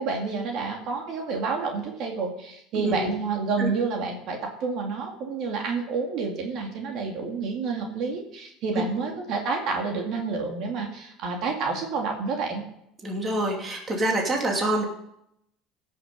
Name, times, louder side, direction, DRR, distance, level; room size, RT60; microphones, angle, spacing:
voice 1, 0.0-12.6, right 4 dB, 55° right, 1 dB, 2.4 m, -29 dB
voice 2, 13.0-14.8, right 1 dB, 20° right, 0 dB, 2.7 m, -26 dB
17.0 x 6.7 x 5.3 m, 0.76 s
cardioid pair, 135°, 0 cm